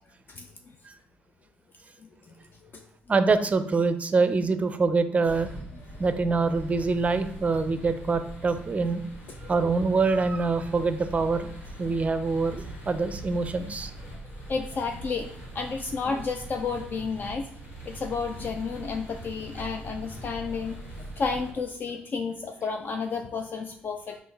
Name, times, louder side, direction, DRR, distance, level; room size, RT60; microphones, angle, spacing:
voice 1, 0.3-0.7 2.0-2.3 2.6-2.9 5.7-6.0 9.4-9.5 14.5-17.5 17.8-20.8 21.1-24.2, left 4 dB, 45° left, 5 dB, 0.4 m, -32 dB
voice 2, 3.1-5.5 6.0-9.0 9.5-11.5 11.8-13.9, right 4 dB, 30° right, 10 dB, 0.4 m, -25 dB
sound 1, 5.3-21.5, right 1 dB, 70° left, 1.5 m, -42 dB
3.7 x 2.5 x 3.9 m, 0.67 s
supercardioid pair, 60°, 5 cm